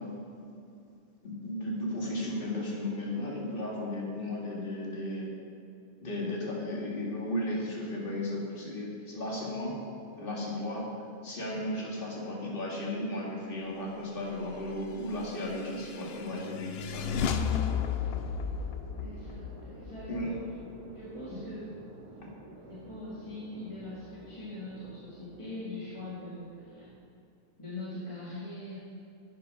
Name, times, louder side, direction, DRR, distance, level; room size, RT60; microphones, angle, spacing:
voice 1, 1.2-5.3 6.0-9.7 10.2-10.8 11.2-17.4 20.1-20.3, left 1 dB, 35° left, -3 dB, 2.2 m, -35 dB
sound 1, 15.1-20.7, left 7 dB, 60° left, 0.6 m, -34 dB
sound 2, 16.9-27.0, right 2 dB, 90° right, 1.9 m, -51 dB
voice 2, 17.2-17.7 19.0-20.3 20.9-21.6 22.1-22.2 22.6-26.9 27.6-28.8, left 2 dB, 20° left, -8 dB, 1.9 m, -42 dB
11.0 x 8.4 x 5.3 m, 2.5 s
omnidirectional pair, 1.5 m